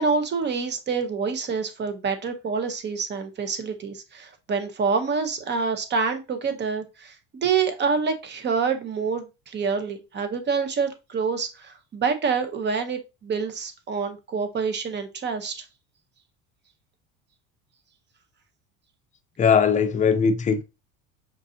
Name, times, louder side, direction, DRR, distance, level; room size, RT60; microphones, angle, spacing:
voice 1, 0.0-15.6, right 5 dB, 30° right, 0.8 m, -27 dB
voice 2, 19.4-20.6, left 6 dB, 20° left, 0.6 m, -20 dB
5.4 x 2.5 x 2.7 m
supercardioid pair, 95°, 34 cm